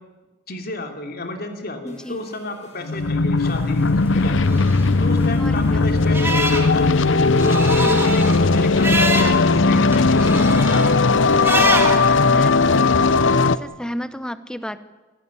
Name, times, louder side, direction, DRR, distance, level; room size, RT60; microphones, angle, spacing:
voice 1, 0.5-4.6 5.0-11.5, left 2 dB, 55° left, 5 dB, 3.1 m, -32 dB
voice 2, 1.8-2.2 5.4-5.8 7.8-8.1 11.6-14.8, equal, 5° left, 13 dB, 1.0 m, -33 dB
sound 1, 1.9-10.0, left 3 dB, 40° left, 5.7 m, -43 dB
sound 2, 2.8-13.6, left 3 dB, 90° left, 0.8 m, -17 dB
sound 3, 3.4-13.2, right 2 dB, 15° right, 2.5 m, -28 dB
26.5 x 15.0 x 9.9 m, 1.2 s
head